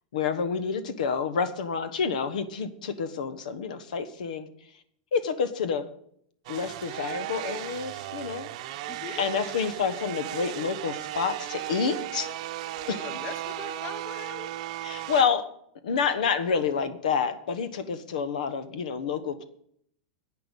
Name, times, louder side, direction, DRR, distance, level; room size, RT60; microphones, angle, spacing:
voice 1, 0.1-4.5 5.1-5.9 6.5-8.5 8.8-8.9 9.2-12.3 12.9-13.0 14.8-15.5 15.8-19.4, left 6 dB, 85° left, 12 dB, 1.1 m, -28 dB
sound 1, 6.4-15.2, right 14 dB, 55° right, 0.8 m, -36 dB
voice 2, 8.9-9.3 12.9-14.6, left 7 dB, 30° left, 12 dB, 0.9 m, -41 dB
10.5 x 8.9 x 5.3 m, 0.68 s
supercardioid pair, 155°, 4 cm